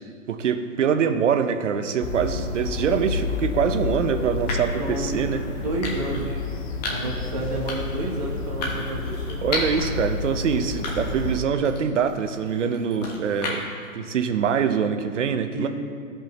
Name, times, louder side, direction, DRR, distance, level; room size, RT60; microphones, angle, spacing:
voice 1, 0.3-5.4 7.0-7.1 9.4-15.7, right 7 dB, 60° right, 8 dB, 0.7 m, -24 dB
sound 1, 2.0-11.4, left 3 dB, 50° left, 1.0 m, -30 dB
sound 2, 3.2-3.4 4.5-4.8 5.8-6.3 6.8-7.2 7.7-8.0 8.6-9.9 10.3-10.4 10.8-11.3 11.7-13.9, left 2 dB, 30° left, 1.2 m, -33 dB
voice 2, 4.8-5.2 5.5-6.4 6.9-9.4 15.5-15.7, right 1 dB, 25° right, -1 dB, 0.9 m, -30 dB
14.5 x 5.4 x 3.1 m, 2.1 s
hypercardioid pair, 160°, 42 cm